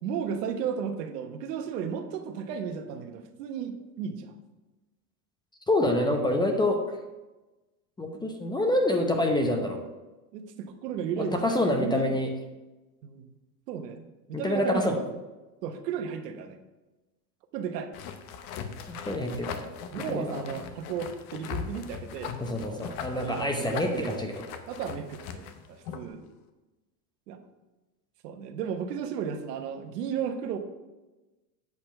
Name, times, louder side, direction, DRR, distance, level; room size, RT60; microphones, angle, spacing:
voice 1, 0.0-4.4 10.3-12.2 13.0-13.3 13.7-15.1 15.6-16.6 17.5-17.9 19.9-22.8 23.1-24.1 24.7-26.2 27.3-27.4 28.2-30.6, right 7 dB, 75° right, 7 dB, 1.2 m, -34 dB
voice 2, 5.7-7.0 8.0-9.8 11.2-12.3 14.3-15.0 18.9-19.7 20.1-20.3 22.4-24.4, left 1 dB, 10° left, 3 dB, 0.7 m, -27 dB
sound 1, 17.9-26.1, left 7 dB, 55° left, 1.0 m, -39 dB
8.4 x 4.3 x 5.6 m, 1.1 s
supercardioid pair, 120°, 48 cm